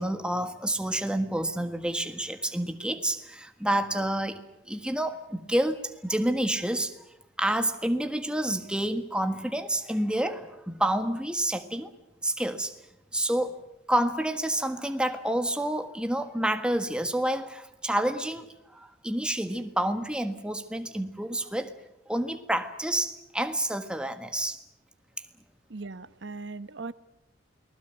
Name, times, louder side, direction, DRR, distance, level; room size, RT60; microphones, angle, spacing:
voice 1, 0.0-6.9 7.4-11.9 12.2-12.8 13.1-13.6 13.9-21.7 22.1-24.6, right 1 dB, 5° right, 7 dB, 1.5 m, -29 dB
voice 2, 25.7-26.9, right 3 dB, 65° right, 14 dB, 1.0 m, -39 dB
29.0 x 20.0 x 8.1 m, 0.88 s
head